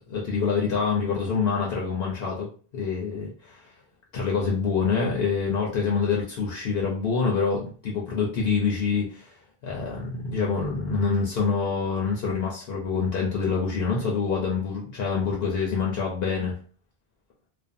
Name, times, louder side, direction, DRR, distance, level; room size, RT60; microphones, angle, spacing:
voice 1, 0.0-2.5 2.7-3.6 4.1-9.4 9.6-16.5, left 5 dB, 70° left, -2 dB, 0.8 m, -26 dB
2.5 x 2.2 x 2.5 m, 0.40 s
omnidirectional pair, 1.1 m